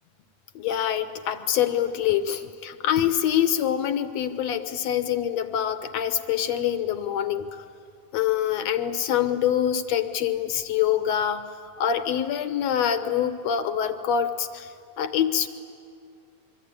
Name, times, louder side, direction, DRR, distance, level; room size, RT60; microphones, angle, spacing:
voice 1, 0.5-7.6 8.1-11.5 11.8-15.5, left 9 dB, 70° left, 10 dB, 1.7 m, -25 dB
26.0 x 23.5 x 9.6 m, 2.5 s
omnidirectional pair, 3.9 m